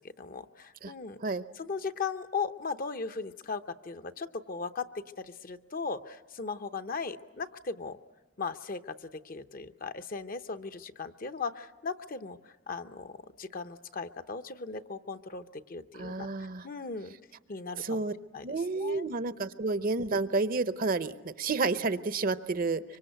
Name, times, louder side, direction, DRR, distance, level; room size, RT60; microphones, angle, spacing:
voice 1, 0.2-1.2 1.5-4.9 5.2-8.0 8.4-9.0 9.2-12.4 12.7-13.1 13.4-17.1 17.5-18.0 18.3-19.1, left 4 dB, 45° left, 11 dB, 0.8 m, -37 dB
voice 2, 16.0-16.7 17.8-18.1 18.4-22.8, right 3 dB, 45° right, 14 dB, 0.7 m, -30 dB
25.0 x 24.0 x 8.0 m, 1.1 s
head